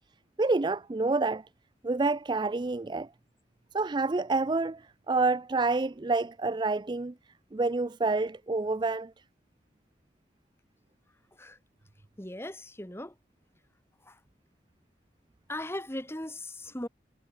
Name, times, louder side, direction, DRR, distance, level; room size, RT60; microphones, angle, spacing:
voice 1, 0.4-1.5 1.8-3.1 3.7-7.1 7.5-9.1, right 3 dB, 25° right, 0.4 m, -28 dB
voice 2, 12.2-13.1 14.1-14.2 15.5-16.9, left 1 dB, 15° left, 2.8 m, -38 dB
head